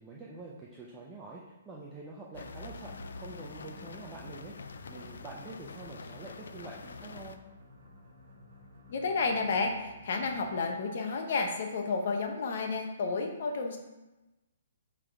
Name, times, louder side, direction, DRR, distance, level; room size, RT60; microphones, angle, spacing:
voice 1, 0.0-2.9 3.2-4.5 4.9-7.4, right 3 dB, 10° right, -3 dB, 0.4 m, -46 dB
sound 1, 2.3-7.4, left 4 dB, 70° left, 0.4 m, -46 dB
sound 2, 2.6-10.9, left 1 dB, 60° right, 1.3 m, -53 dB
voice 2, 8.9-13.8, left 4 dB, 40° left, 4 dB, 0.8 m, -31 dB
5.5 x 3.5 x 4.8 m, 1.0 s
hypercardioid pair, 180°, 0 cm